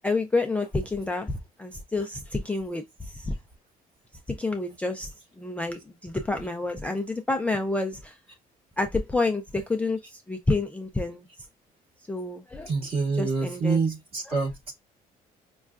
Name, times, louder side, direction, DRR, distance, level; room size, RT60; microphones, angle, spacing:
voice 1, 0.0-1.3 1.6-3.3 4.4-5.1 5.4-8.1 8.8-11.3 12.1-12.7 13.2-13.8 14.3-14.4, left 2 dB, 10° left, 0.3 m, -29 dB
voice 2, 12.7-14.5, right 4 dB, 40° right, 2.1 m, -26 dB
5.2 x 2.3 x 2.3 m
cardioid pair, 150°, 16 cm